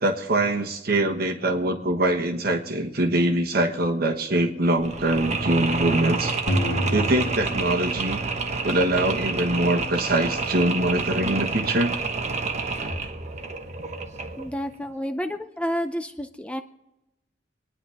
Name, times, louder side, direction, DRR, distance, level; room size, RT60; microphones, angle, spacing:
voice 1, 0.0-6.3 6.9-8.2 8.6-11.9, right 1 dB, 60° right, 3 dB, 1.4 m, -23 dB
Mechanisms, 4.8-14.6, right 4 dB, 40° right, 1.1 m, -29 dB
sound 1, 6.5-8.6, equal, 80° left, 1.8 m, -28 dB
voice 2, 14.4-16.6, equal, 5° left, 7 dB, 0.5 m, -30 dB
27.5 x 9.9 x 3.5 m, 0.98 s
head